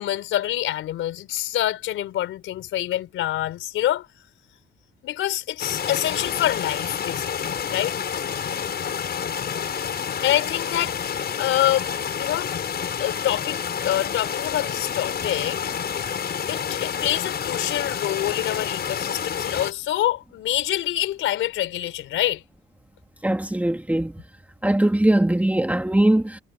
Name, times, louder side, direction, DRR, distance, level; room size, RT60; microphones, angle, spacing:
voice 1, 0.0-4.1 5.0-7.9 10.2-11.9 12.2-12.5 13.0-15.6 16.5-22.4, left 13 dB, 85° left, 4.5 m, -26 dB
sound 1, 5.6-19.7, left 7 dB, 55° left, 5.9 m, -29 dB
voice 2, 23.2-24.2 24.6-26.4, right 1 dB, 5° right, 2.3 m, -20 dB
cardioid pair, 90°, 20 cm